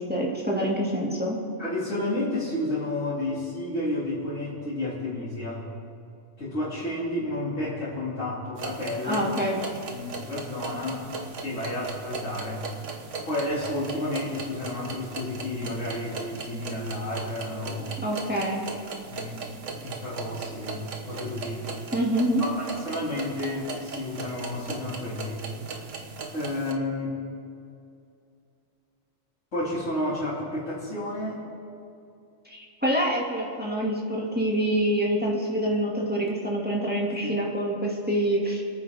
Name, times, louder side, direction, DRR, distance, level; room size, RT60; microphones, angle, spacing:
voice 1, 0.0-1.4 9.0-9.6 18.0-18.6 21.9-22.4 32.5-38.6, right 1 dB, 5° right, -4 dB, 2.2 m, -26 dB
voice 2, 1.6-5.7 6.4-9.3 9.9-11.1 11.4-12.7 13.2-18.0 19.1-19.5 19.8-21.6 22.4-25.5 26.3-27.2 29.5-31.4 37.2-37.3, left 1 dB, 70° left, -9 dB, 2.9 m, -31 dB
sound 1, 8.6-26.7, right 4 dB, 65° right, 1.4 m, -38 dB
26.0 x 9.3 x 3.6 m, 2.5 s
omnidirectional pair, 1.3 m